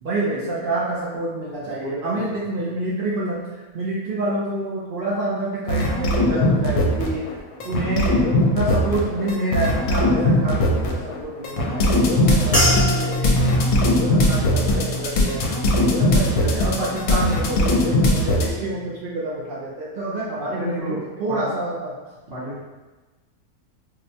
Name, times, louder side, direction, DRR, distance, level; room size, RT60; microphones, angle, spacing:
voice 1, 0.0-3.4 3.7-7.3 7.6-13.3 14.1-15.4 15.7-20.8 21.2-22.0, right 2 dB, 80° right, -6 dB, 0.4 m, -27 dB
voice 2, 1.8-2.2 7.6-8.0 12.1-12.6 20.4-21.0 21.3-21.4 22.3-22.6, equal, 50° right, -8 dB, 1.0 m, -33 dB
sound 1, 5.7-7.3 7.6-18.5, left 1 dB, 75° left, 1.0 m, -20 dB
sound 2, 12.5-17.1 17.4-18.0 18.6-18.9, equal, 30° left, 0.9 m, -26 dB
4.5 x 2.1 x 2.7 m, 1.2 s
omnidirectional pair, 1.6 m